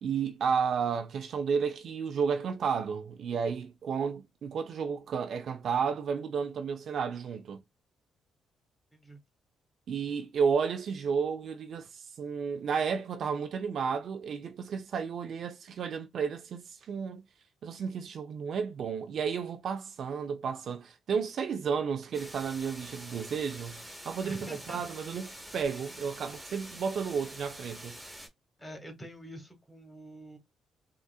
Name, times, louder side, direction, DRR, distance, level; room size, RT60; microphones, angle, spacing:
voice 1, 0.0-7.6 9.9-17.2 17.6-28.0, right 6 dB, 60° right, 0.4 m, -32 dB
sound 1, 22.1-28.3, right 1 dB, 10° right, 1.2 m, -46 dB
voice 2, 24.2-24.8 28.6-30.4, equal, 10° left, 1.4 m, -45 dB
3.7 x 2.4 x 2.3 m
cardioid pair, 90°, 0 cm